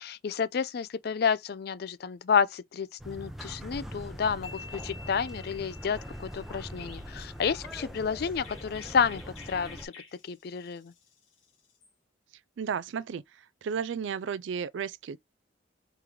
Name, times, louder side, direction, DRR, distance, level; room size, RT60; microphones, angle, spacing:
voice 1, 0.0-9.9 10.2-10.9, left 6 dB, 50° left, 0.4 m, -30 dB
sound 1, 3.0-9.9, equal, ahead, 0.6 m, -42 dB
sound 2, 4.4-8.0, left 4 dB, 35° left, 1.1 m, -50 dB
Chirp tweet, 6.8-11.9, left 5 dB, 85° left, 1.5 m, -52 dB
voice 2, 12.6-13.2 13.6-15.2, right 7 dB, 70° right, 0.3 m, -33 dB
3.8 x 3.0 x 3.2 m
head